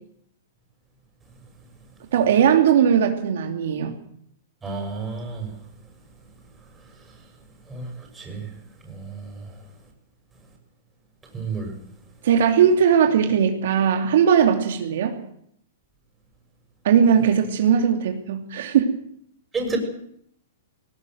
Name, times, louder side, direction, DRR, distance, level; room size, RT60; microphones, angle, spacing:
voice 1, 2.1-4.0 12.2-15.2 16.8-18.9, right 8 dB, 65° right, 4 dB, 2.8 m, -19 dB
voice 2, 4.6-5.5 7.7-7.9 8.2-8.4 8.8-9.3 11.3-11.7 19.5-19.8, right 4 dB, 15° right, 3 dB, 6.5 m, -30 dB
19.0 x 18.5 x 7.9 m, 0.68 s
hypercardioid pair, 140°, 0 cm